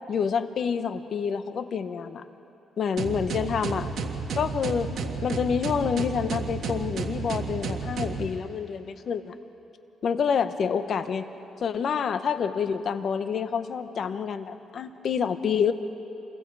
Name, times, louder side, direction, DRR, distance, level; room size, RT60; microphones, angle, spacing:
voice 1, 0.1-2.2 2.8-3.9 4.4-9.4 10.0-11.3 11.6-15.7, left 6 dB, 55° left, 11 dB, 1.0 m, -28 dB
sound 1, 3.0-8.2, right 5 dB, 65° right, 1.8 m, -31 dB
28.5 x 22.5 x 4.8 m, 2.9 s
cardioid pair, 90°, 0 cm